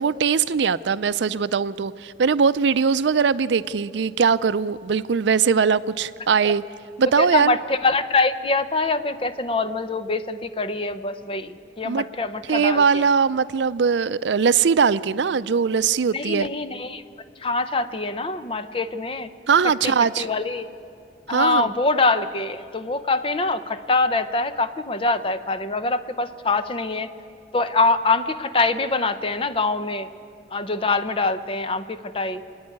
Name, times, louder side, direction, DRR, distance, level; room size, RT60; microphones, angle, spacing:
voice 1, 0.0-6.6 7.0-7.6 11.8-12.0 12.5-16.5 19.5-20.3 21.3-21.7, right 6 dB, 75° right, 15 dB, 0.5 m, -21 dB
voice 2, 7.2-13.1 16.1-17.0 17.4-19.3 19.8-20.7 21.3-27.1 27.5-30.1 30.5-32.4, left 3 dB, 30° left, 11 dB, 0.7 m, -24 dB
28.5 x 9.5 x 9.6 m, 2.5 s
head